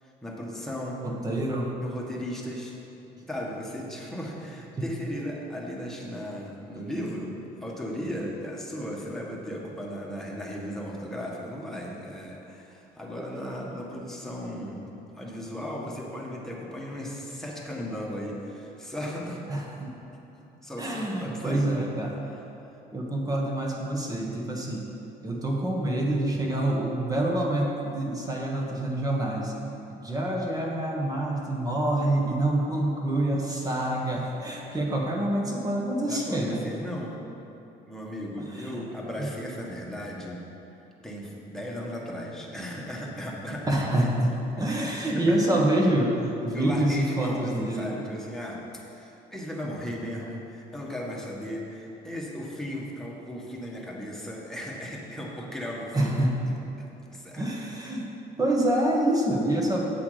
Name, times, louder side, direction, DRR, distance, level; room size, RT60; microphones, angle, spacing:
voice 1, 0.0-1.1 1.8-2.8 3.2-14.8 15.1-19.7 20.3-21.9 36.1-37.2 37.8-40.8 41.0-43.7 44.0-44.1 44.7-45.4 46.5-56.1 56.8-57.4, equal, 5° left, -3 dB, 1.6 m, -36 dB
voice 2, 1.0-1.7 4.8-4.9 19.5-19.9 20.8-22.1 22.9-24.9 25.2-29.5 29.9-36.7 38.4-38.8 39.2-39.3 43.7-46.2 46.4-47.9 55.9-56.4 57.4-58.1 58.4-59.8, right 1 dB, 20° right, -1 dB, 1.4 m, -26 dB
8.1 x 7.9 x 5.0 m, 3.0 s
cardioid pair, 110°, 17 cm